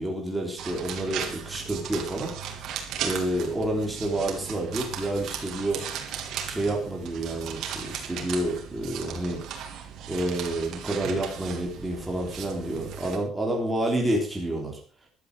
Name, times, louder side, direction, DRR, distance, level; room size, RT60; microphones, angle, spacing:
voice 1, 0.0-2.3 3.0-5.8 6.4-9.4 10.1-14.8, right 1 dB, 5° right, -2 dB, 3.5 m, -29 dB
sound 1, 0.6-13.2, right 8 dB, 60° right, 3.2 m, -37 dB
15.0 x 12.0 x 4.9 m, 0.38 s
cardioid pair, 170°, 0 cm